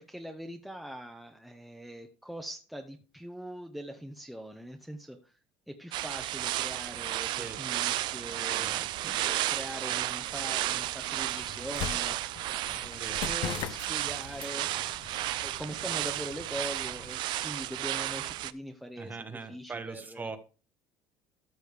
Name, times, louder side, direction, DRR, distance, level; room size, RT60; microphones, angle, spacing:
voice 1, 0.0-5.4 5.7-8.7 9.2-12.2 12.7-14.7 15.4-20.3, equal, ahead, 4 dB, 0.9 m, -42 dB
sound 1, 5.9-18.5, right 15 dB, 65° right, 0.5 m, -33 dB
sound 2, 8.1-17.2, left 8 dB, 60° left, 1.0 m, -43 dB
voice 2, 8.6-9.2 13.0-13.2 19.0-20.4, right 4 dB, 20° right, 9 dB, 1.3 m, -41 dB
13.5 x 6.2 x 3.5 m, 0.34 s
cardioid pair, 115°, 9 cm